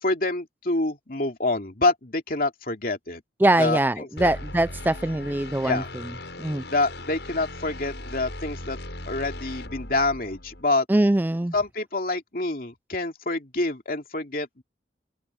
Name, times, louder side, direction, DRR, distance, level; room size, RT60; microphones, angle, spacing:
voice 1, 0.0-3.2 3.6-4.3 5.6-5.9 6.7-8.8 9.0-10.9 11.5-14.6, left 2 dB, 50° left, 2.7 m, -27 dB
voice 2, 3.4-6.0 6.4-6.6 10.9-11.5, right 1 dB, 10° right, 0.3 m, -22 dB
sound 1, 4.2-10.6, left 1 dB, 75° left, 6.7 m, -38 dB
open air
head